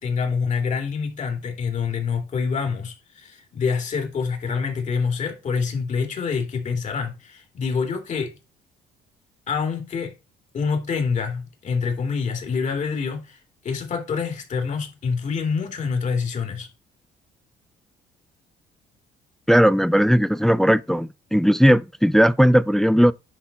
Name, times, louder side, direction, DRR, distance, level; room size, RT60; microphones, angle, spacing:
voice 1, 0.0-8.3 9.5-10.1 10.5-13.4 13.6-16.7, left 5 dB, 45° left, 2.8 m, -26 dB
voice 2, 19.5-23.1, equal, ahead, 0.4 m, -17 dB
10.0 x 4.0 x 4.2 m
cardioid pair, 110°, 17 cm